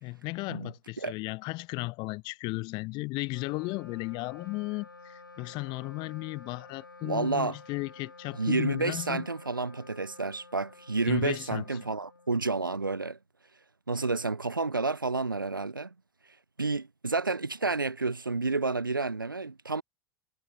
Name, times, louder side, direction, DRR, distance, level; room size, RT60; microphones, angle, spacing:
voice 1, 0.0-9.3 11.1-11.6, left 24 dB, 45° left, 0.7 m, -35 dB
Wind instrument woodwind instrument, 3.3-12.8, left 3 dB, 85° left, 1.1 m, -52 dB
voice 2, 7.0-7.6 8.4-13.2 13.9-15.9 16.6-19.8, right 3 dB, 85° right, 0.6 m, -30 dB
figure-of-eight pair, 75°, 11 cm